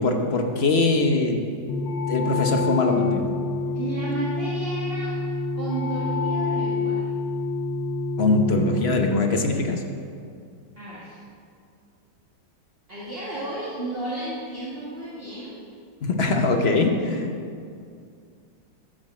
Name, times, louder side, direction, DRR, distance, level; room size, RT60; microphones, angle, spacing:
voice 1, 0.0-1.4 2.1-3.3 8.2-9.8 16.0-17.3, left 3 dB, 45° left, 4 dB, 0.9 m, -22 dB
sound 1, 1.7-9.1, left 3 dB, 90° left, 1.6 m, -27 dB
voice 2, 3.7-5.1 5.6-7.1 10.8-11.2 12.9-15.6, right 2 dB, 30° right, -9 dB, 2.2 m, -33 dB
12.5 x 6.5 x 7.3 m, 2.3 s
omnidirectional pair, 2.0 m